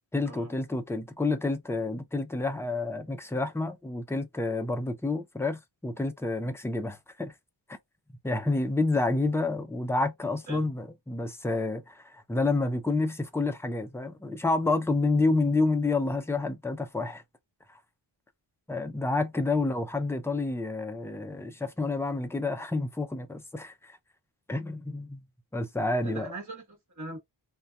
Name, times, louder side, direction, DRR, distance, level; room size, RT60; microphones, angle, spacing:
voice 1, 0.1-7.3 8.2-17.2 18.7-24.0 24.5-25.2 25.5-26.3, left 3 dB, 5° left, 0.5 m, -29 dB
voice 2, 26.0-27.2, right 2 dB, 35° right, 1.2 m, -40 dB
2.7 x 2.2 x 2.2 m
cardioid pair, 50°, 47 cm